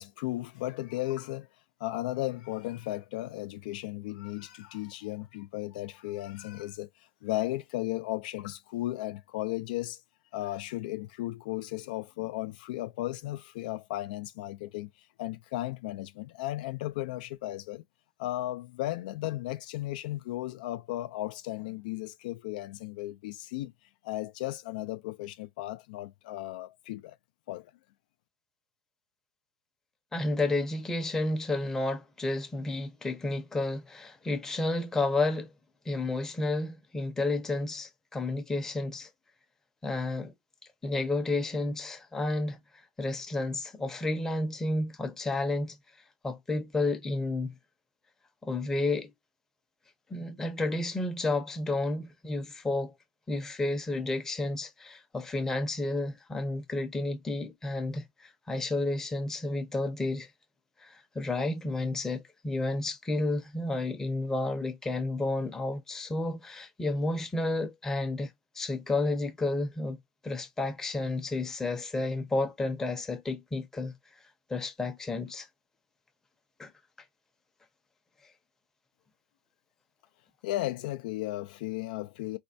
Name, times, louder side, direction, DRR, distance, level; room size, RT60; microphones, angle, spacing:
voice 1, 0.0-1.5 1.8-10.0 10.3-17.8 18.2-23.7 24.0-27.2 27.5-27.7 80.4-82.4, left 16 dB, 65° left, 0.3 m, -35 dB
voice 2, 30.1-35.5 35.9-39.1 39.8-40.3 40.8-42.6 43.0-45.8 46.2-47.5 48.4-49.1 50.1-52.9 53.3-60.3 60.8-70.0 70.2-73.9 74.5-75.5 76.6-76.7, left 2 dB, 10° left, 0.7 m, -31 dB
4.2 x 2.2 x 2.6 m
supercardioid pair, 140°, 5 cm